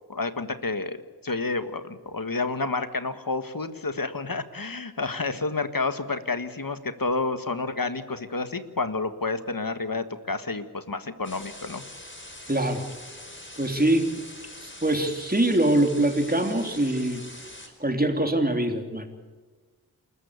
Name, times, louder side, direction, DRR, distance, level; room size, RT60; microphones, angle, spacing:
voice 1, 0.1-1.0 1.2-11.8, left 3 dB, 55° left, 10 dB, 1.7 m, -30 dB
sound 1, 11.2-17.7, left 1 dB, 30° left, 4.3 m, -43 dB
voice 2, 12.5-12.8 13.6-14.1 14.6-17.2 17.8-19.1, right 1 dB, 20° right, 5 dB, 3.3 m, -23 dB
28.0 x 14.0 x 8.3 m, 1.4 s
wide cardioid pair, 50°, 40 cm